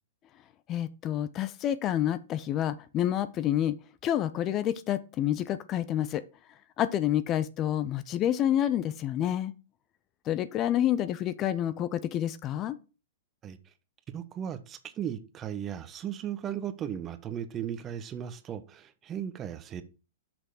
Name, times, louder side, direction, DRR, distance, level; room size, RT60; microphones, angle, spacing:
voice 1, 0.7-3.8 4.0-6.2 6.8-9.5 10.3-12.8, left 11 dB, 30° left, 0.4 m, -28 dB
voice 2, 14.1-19.8, right 9 dB, 25° right, 0.8 m, -36 dB
6.4 x 6.0 x 4.8 m
figure-of-eight pair, 105°, 0 cm